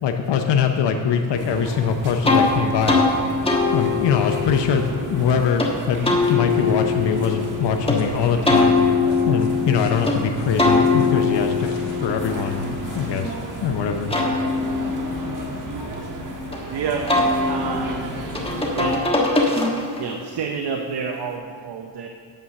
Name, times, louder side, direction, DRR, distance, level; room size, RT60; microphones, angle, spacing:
voice 1, 0.0-3.0 3.7-8.8 9.3-11.7 12.0-14.1, left 6 dB, 70° left, 5 dB, 0.7 m, -22 dB
sound 1, 1.3-19.0, right 2 dB, 45° right, 1.5 m, -34 dB
sound 2, 2.2-2.5 2.9-3.1 3.5-5.7 6.0-8.0 8.5-10.2 10.6-13.5 13.9-16.6 17.1-20.1, left 4 dB, 10° left, 1.4 m, -22 dB
sound 3, 3.3-3.9 4.2-4.3 4.6-6.0 7.1-13.2, left 3 dB, 85° left, 1.6 m, -42 dB
voice 2, 16.6-17.2 17.5-18.2 18.8-19.1 20.0-22.1, right 5 dB, 60° right, 4 dB, 0.8 m, -29 dB
9.0 x 7.2 x 6.3 m, 2.2 s
cardioid pair, 110°, 44 cm